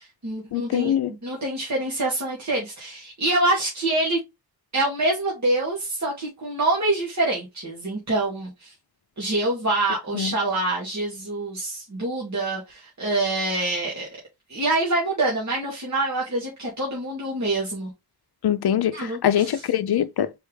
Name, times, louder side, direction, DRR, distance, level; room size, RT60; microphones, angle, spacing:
voice 1, 0.0-0.9 1.2-4.2 4.7-8.7 9.2-14.1 14.5-17.9 18.9-19.5, right 2 dB, 45° right, 2.0 m, -26 dB
voice 2, 0.5-1.1 10.1-10.3 18.4-20.3, left 10 dB, 75° left, 0.5 m, -23 dB
4.5 x 3.4 x 3.2 m
wide cardioid pair, 120°, 39 cm